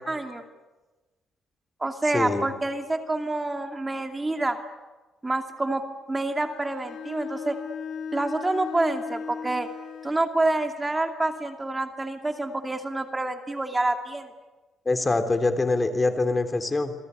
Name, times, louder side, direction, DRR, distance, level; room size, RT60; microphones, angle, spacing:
voice 1, 0.1-0.4 1.8-4.6 5.2-7.6 8.1-9.7 10.0-14.3, right 2 dB, 20° right, 6 dB, 2.5 m, -27 dB
voice 2, 2.1-2.5 14.8-16.9, left 3 dB, 25° left, 8 dB, 3.3 m, -24 dB
Bowed string instrument, 6.3-10.3, left 6 dB, 70° left, 5.3 m, -37 dB
28.0 x 22.0 x 9.6 m, 1.2 s
cardioid pair, 90°, 0 cm